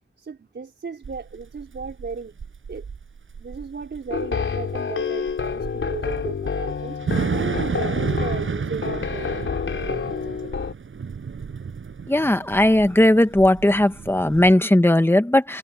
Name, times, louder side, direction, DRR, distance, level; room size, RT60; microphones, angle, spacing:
voice 1, 0.2-2.4 2.7-2.8 3.4-10.6, right 5 dB, 65° right, 4.8 m, -35 dB
Thunder / Rain, 1.0-14.5, right 6 dB, 80° right, 7.5 m, -32 dB
sound 1, 4.1-10.7, left 6 dB, 85° left, 4.4 m, -28 dB
voice 2, 12.1-15.6, left 1 dB, 10° left, 1.5 m, -17 dB
wide cardioid pair, 120°, 20 cm